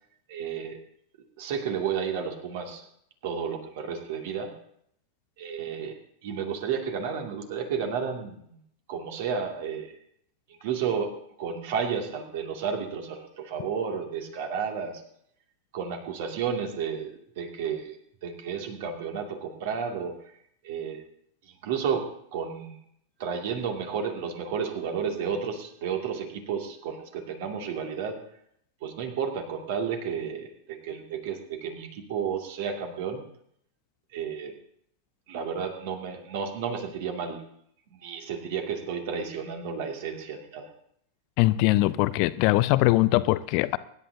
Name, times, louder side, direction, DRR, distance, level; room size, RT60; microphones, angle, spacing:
voice 1, 0.3-0.8 1.4-2.8 3.2-4.6 5.4-8.6 8.9-10.0 10.6-15.0 15.7-20.1 20.6-21.0 21.4-22.8 23.2-28.2 28.8-33.2 34.1-34.5 35.3-37.4 37.9-40.7, right 6 dB, 50° right, 3 dB, 2.4 m, -32 dB
voice 2, 41.4-43.8, left 18 dB, 45° left, 16 dB, 0.5 m, -22 dB
24.5 x 11.5 x 2.8 m, 0.69 s
figure-of-eight pair, 90°, 0 cm